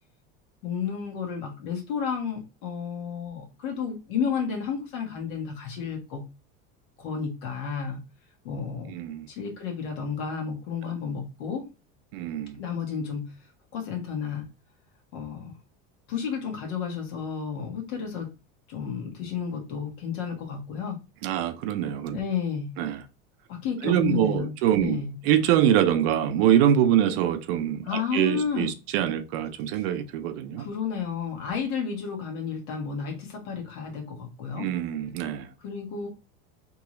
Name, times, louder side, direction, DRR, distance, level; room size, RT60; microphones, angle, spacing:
voice 1, 0.6-6.2 7.0-8.0 8.4-8.9 9.3-11.7 12.6-13.3 13.7-14.5 15.1-15.5 16.1-18.3 18.7-21.0 22.1-22.8 23.5-24.5 24.8-25.1 27.8-28.7 30.6-34.7 35.6-36.1, left 6 dB, 90° left, 1.6 m, -32 dB
voice 2, 8.9-9.3 10.8-10.9 12.1-12.6 21.2-22.2 22.8-23.0 23.8-30.7 34.6-35.5, right 10 dB, 80° right, 0.7 m, -24 dB
3.6 x 3.0 x 3.0 m
supercardioid pair, 135°, 29 cm